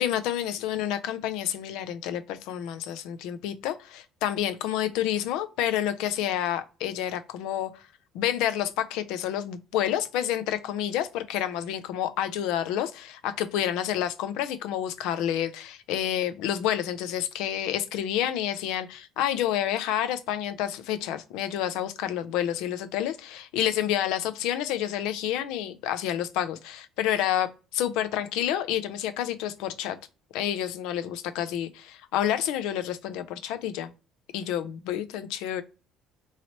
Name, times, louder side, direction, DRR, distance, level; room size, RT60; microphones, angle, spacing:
voice 1, 0.0-7.8 8.1-30.0 30.3-33.9 34.3-35.6, left 11 dB, 80° left, 0.5 m, -29 dB
3.1 x 2.8 x 2.8 m
supercardioid pair, 90°, 0 cm